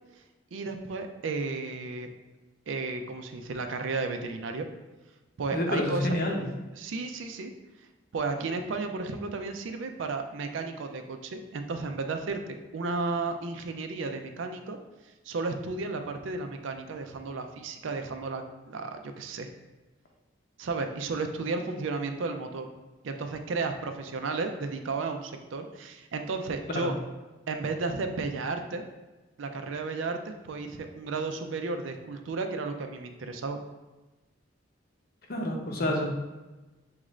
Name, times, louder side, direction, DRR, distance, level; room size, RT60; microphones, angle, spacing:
voice 1, 0.5-2.1 2.7-4.7 5.4-6.2 6.8-7.5 8.1-14.8 15.2-19.5 20.6-22.7 23.0-27.0 27.5-28.8 29.4-33.6, right 3 dB, 80° right, 6 dB, 0.4 m, -33 dB
voice 2, 5.5-6.4 26.7-26.9 35.3-36.0, left 1 dB, 50° left, 1 dB, 0.7 m, -28 dB
6.2 x 2.5 x 3.1 m, 1.2 s
head